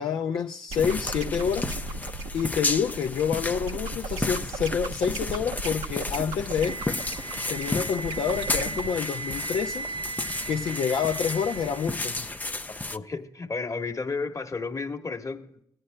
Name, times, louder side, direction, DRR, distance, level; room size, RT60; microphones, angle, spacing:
voice 1, 0.0-7.0 7.5-9.9 10.5-12.2, left 7 dB, 60° left, 0.5 m, -28 dB
sound 1, 0.7-13.0, left 2 dB, 15° left, 0.5 m, -33 dB
sound 2, 0.7-8.9, right 2 dB, 70° right, 1.2 m, -35 dB
Wind instrument woodwind instrument, 6.5-12.5, right 3 dB, 45° right, 0.5 m, -37 dB
voice 2, 12.7-15.4, left 4 dB, 30° left, 1.3 m, -32 dB
17.0 x 10.0 x 2.2 m
hypercardioid pair, 50°, 10 cm